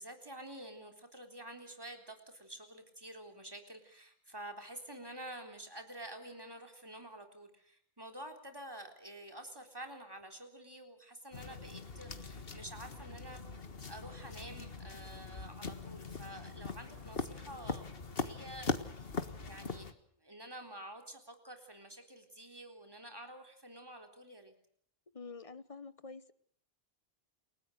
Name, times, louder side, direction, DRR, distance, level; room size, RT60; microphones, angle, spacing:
voice 1, 0.0-13.4 13.9-24.5, right 1 dB, 25° right, 4 dB, 3.9 m, -49 dB
sound 1, 11.3-19.9, left 4 dB, 65° left, 1.8 m, -41 dB
voice 2, 25.1-26.3, left 4 dB, 35° left, 15 dB, 1.1 m, -47 dB
29.5 x 18.0 x 6.5 m, 0.66 s
omnidirectional pair, 1.0 m